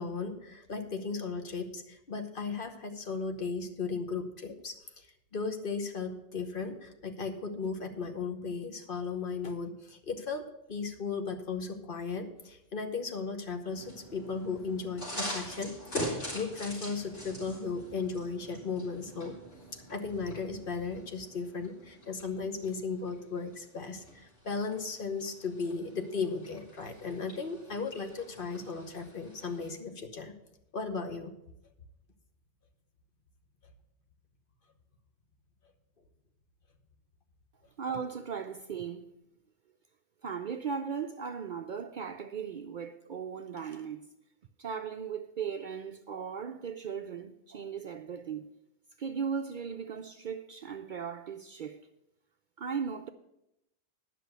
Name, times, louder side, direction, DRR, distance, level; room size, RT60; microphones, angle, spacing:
voice 1, 0.0-5.1 5.3-10.4 10.7-19.4 19.7-30.3 30.7-31.3, left 4 dB, 50° left, 1.2 m, -36 dB
Making Coffee, 13.7-29.7, equal, 85° left, 4.4 m, -44 dB
voice 2, 37.8-39.1 40.2-44.1 44.6-48.5 49.0-51.8 52.6-53.1, right 6 dB, 55° right, 0.6 m, -37 dB
10.0 x 6.0 x 8.0 m
omnidirectional pair, 1.2 m